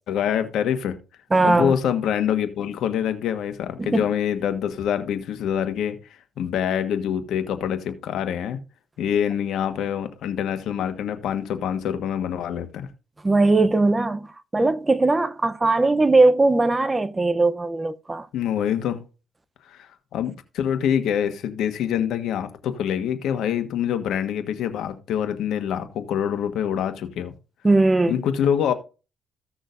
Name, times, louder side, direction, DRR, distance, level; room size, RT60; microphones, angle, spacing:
voice 1, 0.1-1.0 1.4-6.0 6.4-8.6 9.0-12.9 18.3-19.0 19.7-27.3 28.1-28.7, left 9 dB, 80° left, 1.4 m, -25 dB
voice 2, 1.3-1.8 3.8-4.0 13.2-18.3 27.6-28.2, right 2 dB, 20° right, 0.7 m, -19 dB
15.5 x 6.3 x 2.6 m
cardioid pair, 90°, 0 cm